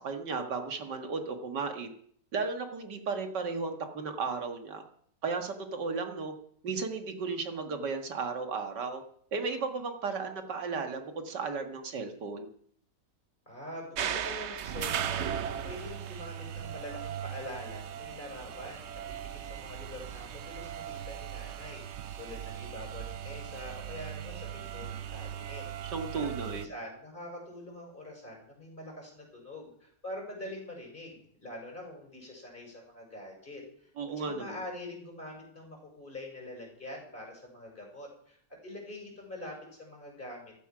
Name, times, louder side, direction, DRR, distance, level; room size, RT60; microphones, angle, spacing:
voice 1, 0.0-1.9 2.3-4.8 5.2-6.3 6.6-9.0 9.3-12.5 25.8-26.7 34.0-34.6, right 4 dB, 90° right, 6 dB, 2.4 m, -34 dB
voice 2, 13.5-15.3 15.6-21.8 22.2-25.6 26.1-33.9 34.2-40.5, left 1 dB, 30° left, 0 dB, 6.5 m, -44 dB
sound 1, 14.0-26.7, right 9 dB, 55° right, 0.8 m, -38 dB
15.5 x 12.5 x 6.1 m, 0.63 s
omnidirectional pair, 1.8 m